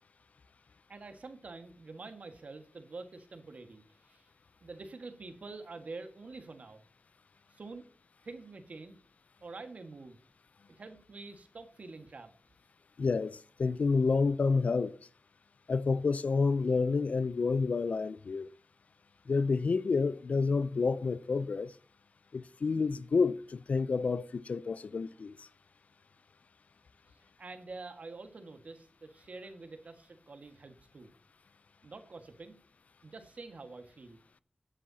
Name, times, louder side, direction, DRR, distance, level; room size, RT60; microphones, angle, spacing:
voice 1, 0.9-4.3 4.6-6.8 7.5-7.9 8.2-9.0 9.4-10.2 10.7-12.3 27.4-31.1 31.8-32.6 33.0-34.2, right 3 dB, 65° right, 1.7 m, -47 dB
voice 2, 13.0-15.0 15.7-18.5 19.3-21.7 22.3-25.5, left 4 dB, 65° left, 0.5 m, -29 dB
17.5 x 7.7 x 2.8 m
cardioid pair, 50°, 3 cm